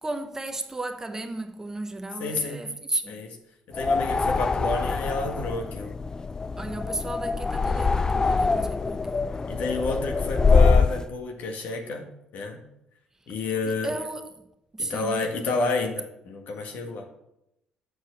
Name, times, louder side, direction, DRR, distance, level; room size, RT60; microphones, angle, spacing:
voice 1, 0.0-3.2 6.6-9.3 13.7-14.3 14.7-15.2, right 2 dB, 20° right, 0.9 m, -34 dB
voice 2, 2.2-2.7 3.1-3.3 3.7-6.0 9.5-12.6 13.3-13.9 14.8-17.1, left 3 dB, 70° left, 1.6 m, -30 dB
sound 1, 3.7-11.0, left 4 dB, 25° left, 0.3 m, -24 dB
7.6 x 4.6 x 5.7 m
cardioid pair, 90°, 3 cm